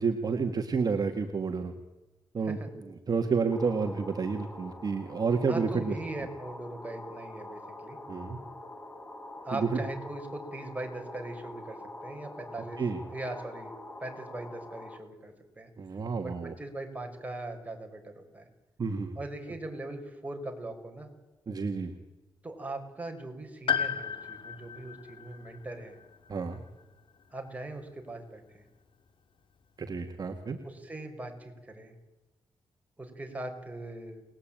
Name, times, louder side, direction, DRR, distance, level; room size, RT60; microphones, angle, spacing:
voice 1, 0.0-1.7 2.3-2.6 3.1-6.0 8.1-8.4 9.5-9.8 12.8-13.0 15.8-16.5 18.8-19.2 21.5-21.9 26.3-26.6 29.8-30.6, right 5 dB, 45° right, 5 dB, 2.0 m, -30 dB
sound 1, 3.5-15.0, left 1 dB, 20° left, 3.7 m, -45 dB
voice 2, 5.5-8.0 9.4-12.8 13.1-13.7 14.0-15.7 16.2-18.5 19.2-21.1 22.4-26.0 27.3-28.6 30.6-31.9 33.0-34.2, right 2 dB, 15° right, 3 dB, 5.5 m, -40 dB
Piano, 23.7-27.6 27.8-27.9 29.1-29.2, left 7 dB, 65° left, 2.3 m, -35 dB
29.5 x 20.5 x 9.0 m, 1.1 s
wide cardioid pair, 135°, 9 cm